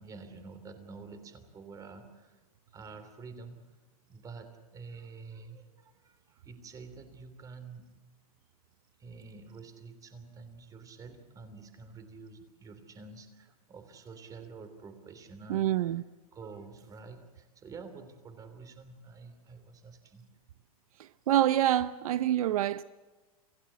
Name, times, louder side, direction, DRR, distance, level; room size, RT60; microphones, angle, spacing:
voice 1, 0.0-2.4 2.7-3.6 4.1-7.9 9.0-16.0 16.3-20.3, right 4 dB, 20° right, 3.1 m, -48 dB
voice 2, 15.5-16.0 21.0-22.8, right 12 dB, 70° right, 0.7 m, -27 dB
28.0 x 16.0 x 8.5 m
hypercardioid pair, 145°, 19 cm